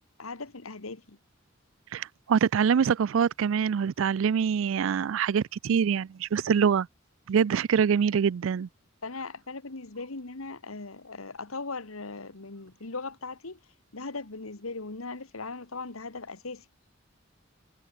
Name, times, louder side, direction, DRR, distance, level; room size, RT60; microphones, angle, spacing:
voice 1, 0.2-1.2 9.0-13.6 13.9-16.7, left 3 dB, 85° left, 1.7 m, -39 dB
voice 2, 1.9-6.9 7.3-8.7, right 7 dB, 70° right, 0.4 m, -24 dB
head